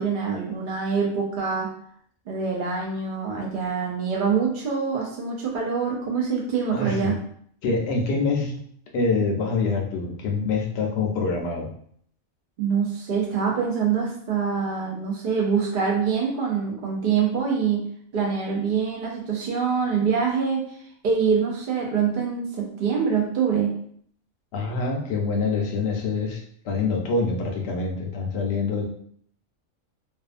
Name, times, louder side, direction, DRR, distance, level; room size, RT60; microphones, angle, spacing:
voice 1, 0.0-1.7 2.3-7.2 12.6-17.8 18.1-23.7, right 6 dB, 75° right, -2 dB, 0.4 m, -25 dB
voice 2, 6.7-7.1 7.6-8.5 8.9-11.7 24.5-28.9, left 4 dB, 65° left, 1 dB, 0.7 m, -25 dB
2.5 x 2.3 x 2.4 m, 0.63 s
omnidirectional pair, 1.5 m